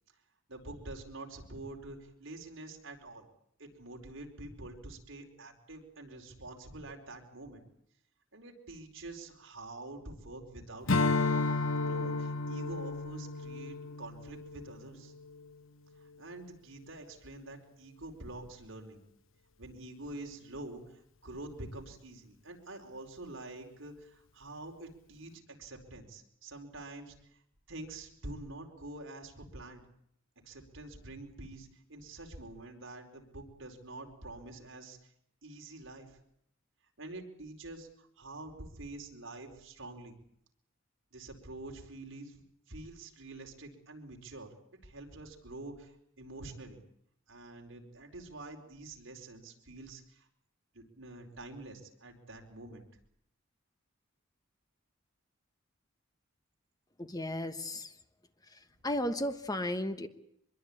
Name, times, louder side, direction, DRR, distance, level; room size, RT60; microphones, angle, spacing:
voice 1, 0.5-3.3 3.6-7.6 8.3-11.3 11.8-15.1 16.0-19.0 19.6-27.4 27.7-29.8 30.4-35.1 35.4-36.2 37.0-40.2 41.1-42.4 42.7-44.5 44.8-46.8 47.3-50.3 50.7-52.8, right 2 dB, 70° right, 2 dB, 4.7 m, -47 dB
Strum, 10.9-15.6, left 3 dB, 70° left, 1.1 m, -32 dB
voice 2, 57.0-57.9 58.8-60.1, left 1 dB, 20° left, 8 dB, 1.3 m, -34 dB
24.5 x 22.5 x 8.8 m, 0.71 s
head